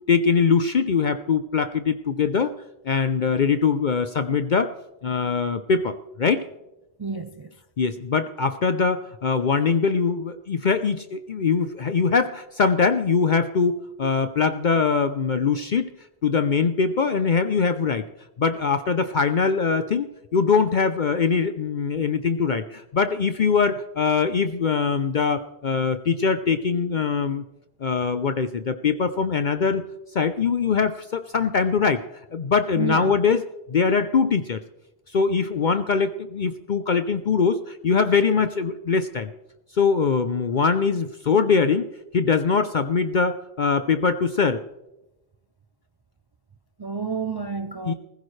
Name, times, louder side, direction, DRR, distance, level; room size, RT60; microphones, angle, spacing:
voice 1, 0.1-2.5 2.8-4.7 5.0-6.4 7.8-15.9 16.2-18.0 18.4-20.1 20.3-27.4 27.8-29.9 30.1-32.0 32.3-33.4 33.7-34.6 35.1-39.3 39.7-41.9 42.1-44.6 47.9-48.0, left 5 dB, 50° left, 0.7 m, -22 dB
voice 2, 7.0-7.5 14.0-14.1 32.7-33.2 46.8-47.9, right 5 dB, 35° right, 0.4 m, -30 dB
19.5 x 15.5 x 3.2 m
omnidirectional pair, 1.1 m